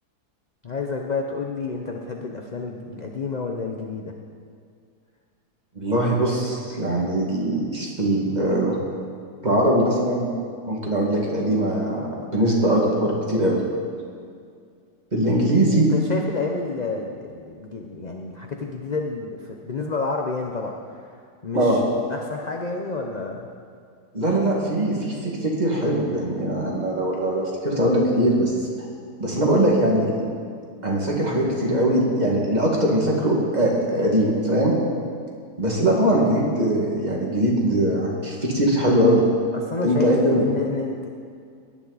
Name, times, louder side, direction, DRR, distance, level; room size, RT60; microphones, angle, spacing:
voice 1, 0.6-4.1 15.2-20.7 21.4-21.8 22.1-23.5 39.5-41.1, left 3 dB, 40° left, 1 dB, 0.6 m, -30 dB
voice 2, 5.8-8.8 9.4-10.3 10.7-13.6 15.1-15.9 21.5-21.8 24.1-28.5 29.2-30.2 30.8-34.7 35.6-39.2 39.8-40.4, right 1 dB, 25° right, -2 dB, 2.1 m, -21 dB
17.5 x 10.5 x 4.1 m, 2.2 s
omnidirectional pair, 1.8 m